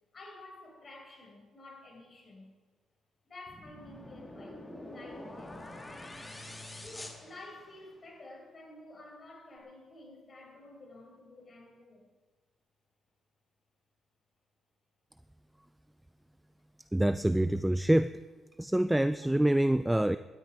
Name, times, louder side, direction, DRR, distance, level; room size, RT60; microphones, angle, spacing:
voice 1, 0.1-2.5 3.3-5.6 6.8-12.1, left 2 dB, 40° left, -1 dB, 6.3 m, -51 dB
sound 1, 3.5-8.1, left 1 dB, 15° left, 2.5 m, -46 dB
voice 2, 16.9-18.1 18.6-20.2, right 1 dB, 5° right, 13 dB, 0.4 m, -26 dB
18.0 x 13.0 x 4.9 m, 1.4 s
cardioid pair, 90°, 0 cm